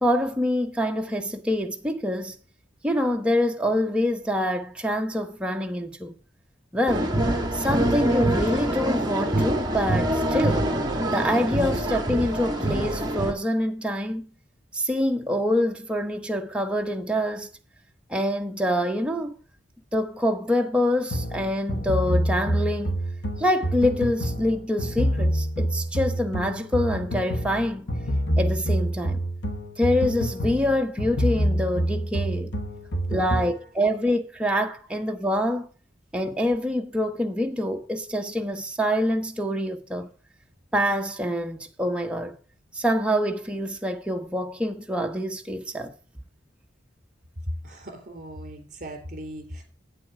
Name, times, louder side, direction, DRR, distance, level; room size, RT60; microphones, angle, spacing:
voice 1, 0.0-2.4 2.8-6.1 6.7-7.1 7.5-10.8 11.1-14.3 14.7-17.5 18.1-19.3 19.9-23.0 23.4-27.9 28.4-29.2 29.8-32.5 33.1-35.7 36.1-40.1 40.7-42.4 42.7-45.9, left 1 dB, 5° right, 0.9 m, -25 dB
sound 1, 6.9-13.3, right 1 dB, 20° right, 1.3 m, -25 dB
sound 2, 21.1-33.6, equal, 65° left, 1.2 m, -27 dB
voice 2, 47.6-49.6, right 1 dB, 45° right, 3.3 m, -39 dB
8.4 x 7.7 x 4.8 m
head